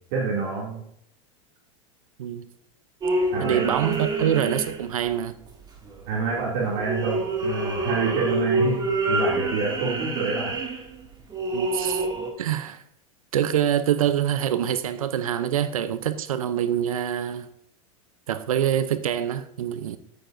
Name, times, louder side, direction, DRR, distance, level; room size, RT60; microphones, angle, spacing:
voice 1, 0.1-0.8 3.3-3.7 6.1-8.8 9.1-10.5, right 5 dB, 60° right, 2.7 m, -27 dB
sound 1, 3.0-5.1 5.5-6.1 6.6-12.3, right 2 dB, 25° right, 2.4 m, -27 dB
voice 2, 3.4-5.3 11.5-12.1 12.4-12.8 13.3-17.5 18.3-20.0, right 10 dB, 85° right, 0.7 m, -25 dB
13.5 x 9.2 x 2.7 m
hypercardioid pair, 110°, 17 cm